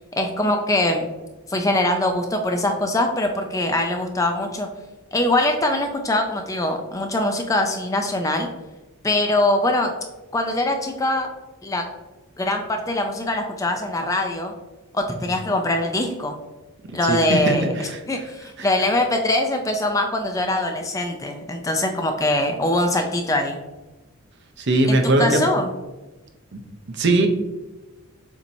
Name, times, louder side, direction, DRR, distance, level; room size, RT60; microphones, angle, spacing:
voice 1, 0.2-1.1 1.5-4.7 5.1-8.5 9.0-9.9 10.3-11.3 11.6-11.9 12.4-14.5 14.9-16.4 16.9-23.6 24.9-25.7, left 1 dB, 15° left, 4 dB, 0.3 m, -22 dB
voice 2, 17.0-18.0 18.6-18.7 24.6-25.5 26.5-26.6 26.9-27.3, right 2 dB, 50° right, 4 dB, 0.6 m, -20 dB
7.1 x 2.9 x 2.6 m, 1.1 s
head